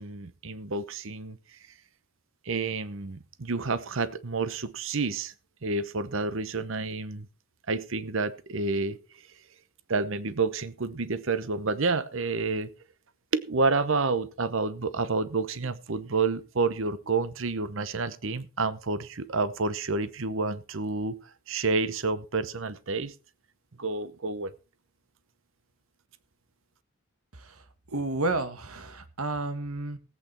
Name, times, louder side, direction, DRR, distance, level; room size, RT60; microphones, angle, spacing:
voice 1, 0.0-1.4 2.5-5.3 5.6-7.3 7.7-9.0 9.9-12.7 13.3-21.2 21.5-23.1 23.8-24.5, right 3 dB, 65° right, 15 dB, 0.8 m, -29 dB
voice 2, 27.9-30.0, right 2 dB, 85° right, 10 dB, 1.6 m, -31 dB
17.0 x 8.5 x 4.3 m, 0.32 s
head